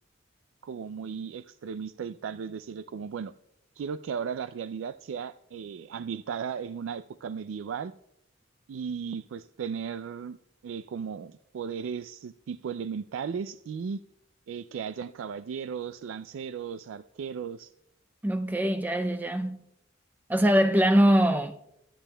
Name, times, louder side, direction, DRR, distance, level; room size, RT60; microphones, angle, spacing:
voice 1, 0.6-3.3 3.8-7.9 8.7-10.4 10.6-14.0 14.5-17.7, right 6 dB, 85° right, 0.3 m, -36 dB
voice 2, 18.2-19.6 20.3-21.7, equal, 10° right, 0.4 m, -23 dB
23.0 x 8.9 x 2.2 m
head